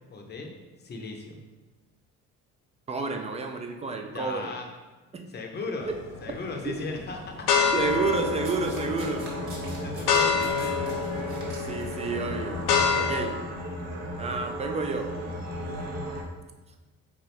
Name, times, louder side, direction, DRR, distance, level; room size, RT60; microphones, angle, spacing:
voice 1, 0.1-0.5 0.8-1.4 4.1-4.7 5.3-6.0 6.2-7.5 9.8-10.9 12.3-13.0, left 3 dB, 30° left, 2 dB, 0.7 m, -37 dB
voice 2, 2.9-4.5 5.1-5.3 5.9-6.0 6.6-6.7 7.7-9.3 11.7-12.6 12.9-13.4 14.2-15.1, right 4 dB, 20° right, 4 dB, 0.4 m, -30 dB
sound 1, 5.8-6.3 6.9-13.2, left 6 dB, 70° left, 0.7 m, -27 dB
sound 2, 7.7-16.2, equal, 55° right, 1.0 m, -35 dB
Domestic sounds home sounds, 8.1-12.1 13.0-13.1, right 2 dB, 35° right, 1.3 m, -46 dB
4.3 x 3.6 x 3.3 m, 1.2 s
cardioid pair, 125°, 33 cm